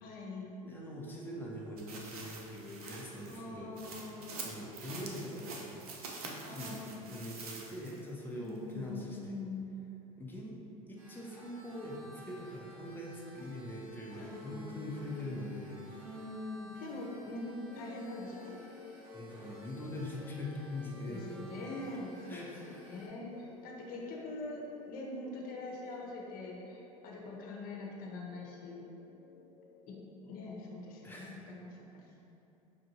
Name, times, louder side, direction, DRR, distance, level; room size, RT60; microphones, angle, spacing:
voice 1, 0.0-0.5 3.3-4.4 6.4-7.1 8.3-9.7 14.1-15.4 15.9-18.5 21.1-28.8 29.9-30.0 30.2-32.1, left 2 dB, 50° left, -2 dB, 0.9 m, -43 dB
voice 2, 0.6-3.7 4.4-5.9 6.2-6.8 7.1-9.4 10.2-15.8 19.1-21.2 22.3-22.8 31.0-31.3, left 1 dB, 10° left, -4 dB, 0.9 m, -43 dB
sound 1, 1.8-8.1 8.5-8.6, right 3 dB, 80° right, 0.6 m, -46 dB
sound 2, 11.0-23.1, equal, 60° right, 1.2 m, -56 dB
sound 3, 17.7-31.1, left 5 dB, 80° left, 0.4 m, -55 dB
5.7 x 2.5 x 2.9 m, 2.9 s
hypercardioid pair, 80°, 19 cm